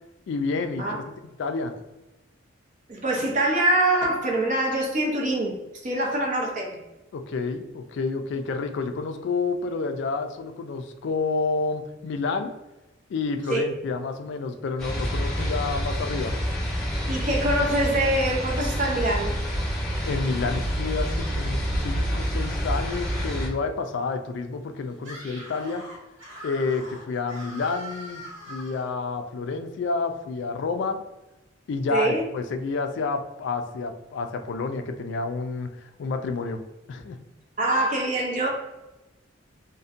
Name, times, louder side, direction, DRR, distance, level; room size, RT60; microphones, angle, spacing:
voice 1, 0.3-1.0 1.4-1.7 7.1-12.5 13.1-16.3 20.1-25.8 26.4-28.2 28.5-31.0 31.7-36.6 36.9-37.2, left 4 dB, 65° left, 7 dB, 0.3 m, -29 dB
voice 2, 2.9-5.6 5.8-6.8 13.5-13.6 17.1-19.4 31.9-32.2 37.6-38.5, right 1 dB, 40° right, -1 dB, 0.6 m, -24 dB
sound 1, 14.8-23.5, equal, ahead, 1.3 m, -28 dB
Screaming, 25.0-28.9, equal, 85° right, 0.8 m, -41 dB
2.6 x 2.1 x 2.4 m, 1.0 s
head